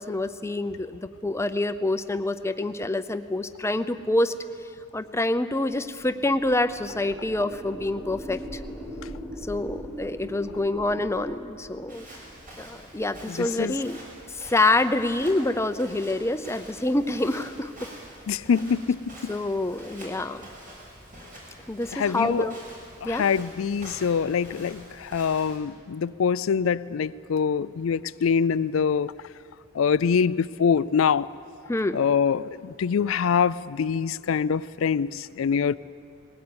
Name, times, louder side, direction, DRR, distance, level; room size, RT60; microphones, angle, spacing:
voice 1, 0.0-4.3 4.9-8.6 9.4-12.1 12.6-14.0 14.4-17.7 19.3-20.5 21.7-22.6 23.0-23.3 31.7-32.0, left 2 dB, 15° left, 11 dB, 0.6 m, -26 dB
sound 1, 6.0-12.1, equal, 5° right, 2.7 m, -40 dB
Walk footsteps, 11.9-25.6, equal, 45° right, 6.1 m, -46 dB
voice 2, 13.3-13.8 18.3-19.1 21.9-22.5 23.0-29.1 29.7-31.3 31.9-35.8, left 6 dB, 85° left, 16 dB, 0.4 m, -24 dB
20.5 x 17.5 x 8.7 m, 2.4 s
head